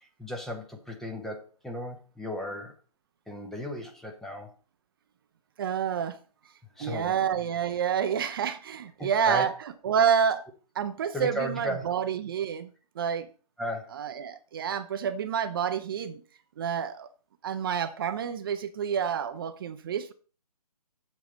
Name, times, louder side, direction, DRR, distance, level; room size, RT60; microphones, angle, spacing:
voice 1, 0.0-2.8 3.3-4.5 6.8-7.1 9.0-9.5 11.1-12.0 13.6-14.0, equal, ahead, 0.7 m, -35 dB
voice 2, 5.6-6.2 6.8-9.5 9.8-10.5 10.8-12.7 13.0-13.3 13.9-16.2 16.6-17.1 17.4-20.1, right 7 dB, 35° right, 0.6 m, -28 dB
7.6 x 7.2 x 4.0 m
figure-of-eight pair, 140°, 20 cm